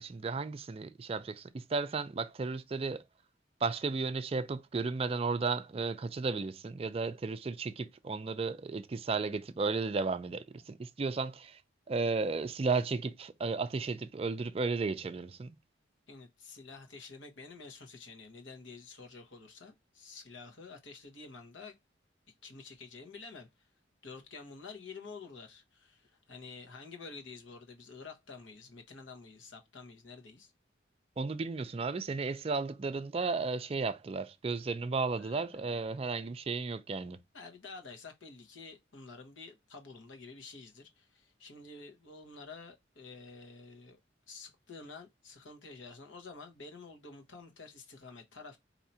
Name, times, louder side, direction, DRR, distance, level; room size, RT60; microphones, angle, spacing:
voice 1, 0.0-3.0 3.6-11.6 11.9-15.6 31.2-37.2, right 4 dB, 30° right, 0.4 m, -34 dB
voice 2, 16.1-21.7 22.4-23.7 24.0-30.5 35.1-35.8 37.3-44.0 44.3-48.6, left 4 dB, 90° left, 1.1 m, -49 dB
4.5 x 2.8 x 2.6 m
head